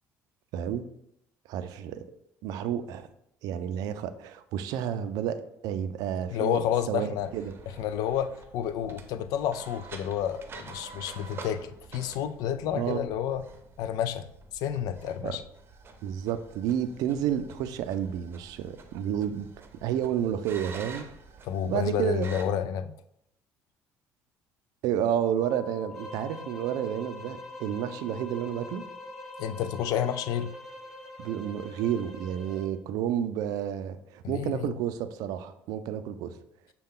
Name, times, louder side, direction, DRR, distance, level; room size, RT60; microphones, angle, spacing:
voice 1, 0.5-0.8 1.5-2.0 2.4-3.1 3.4-7.5 12.7-13.1 15.2-15.4 16.0-19.5 19.8-21.1 21.6-22.3 24.8-28.8 31.2-36.3, right 9 dB, 80° right, 11 dB, 0.4 m, -30 dB
voice 2, 6.3-7.3 7.8-13.4 13.8-14.3 14.5-15.4 21.4-22.9 29.4-30.5 34.2-34.7, left 9 dB, 75° left, 12 dB, 0.4 m, -30 dB
sound 1, 7.2-22.5, right 4 dB, 35° right, 0.7 m, -48 dB
sound 2, 25.4-30.4, left 5 dB, 20° left, 0.6 m, -47 dB
sound 3, 25.9-32.7, equal, ahead, 1.4 m, -45 dB
6.5 x 2.2 x 3.7 m, 0.77 s
supercardioid pair, 90°, 6 cm